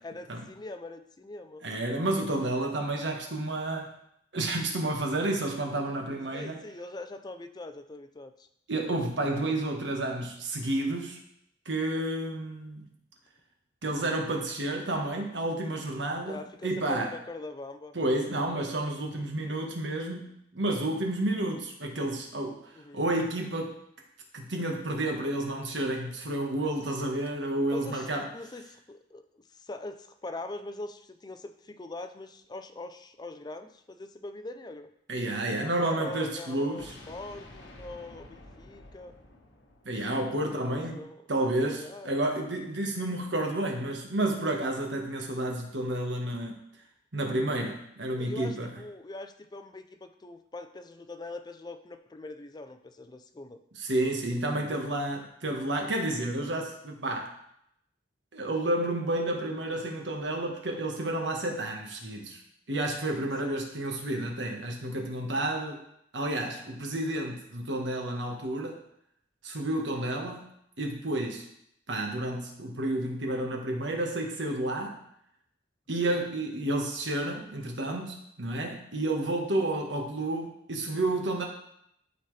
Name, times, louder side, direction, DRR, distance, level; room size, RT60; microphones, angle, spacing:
voice 1, 0.0-1.7 6.3-8.5 16.2-17.9 22.7-23.0 27.7-34.9 35.8-39.1 40.5-41.2 41.7-42.2 48.2-53.6 63.4-63.7 69.9-70.1 76.1-76.3, left 2 dB, 20° left, 9 dB, 0.4 m, -42 dB
voice 2, 1.6-3.9 4.3-6.6 8.7-11.2 11.6-12.9 13.8-17.1 17.9-22.6 22.9-23.8 24.3-28.3 35.1-36.9 39.8-41.0 41.3-46.6 47.1-48.7 53.7-57.4 58.3-62.4 62.7-65.8 66.1-68.8 69.4-70.5 70.8-71.5 71.9-75.0 75.9-81.5, right 1 dB, 80° right, 2 dB, 1.4 m, -30 dB
sound 1, 36.8-40.7, left 1 dB, 85° left, 1.3 m, -50 dB
12.5 x 4.2 x 3.2 m, 0.74 s
head